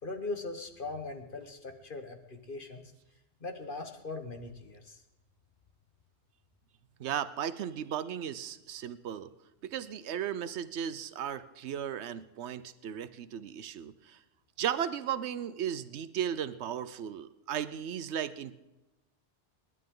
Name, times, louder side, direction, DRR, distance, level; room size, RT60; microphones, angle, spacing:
voice 1, 0.0-2.9 3.4-5.0, left 3 dB, 50° left, 5 dB, 1.5 m, -40 dB
voice 2, 7.0-9.3 9.6-14.2 14.6-18.5, right 9 dB, 75° right, 14 dB, 1.0 m, -35 dB
27.5 x 11.5 x 3.8 m, 1.0 s
omnidirectional pair, 1.2 m